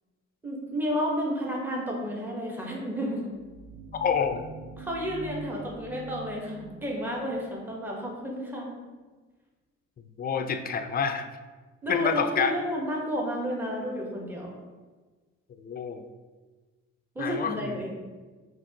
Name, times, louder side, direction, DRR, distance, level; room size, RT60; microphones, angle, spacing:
voice 1, 0.4-3.2 4.8-8.7 11.8-14.5 17.1-17.9, equal, 5° right, -3 dB, 0.9 m, -31 dB
sound 1, 2.8-8.2, right 2 dB, 70° right, 0.7 m, -45 dB
voice 2, 4.0-4.5 10.2-11.3 11.9-12.5 15.6-16.1 17.2-17.8, left 6 dB, 30° left, 8 dB, 0.4 m, -28 dB
5.1 x 2.9 x 2.7 m, 1.3 s
cardioid pair, 90°, 30 cm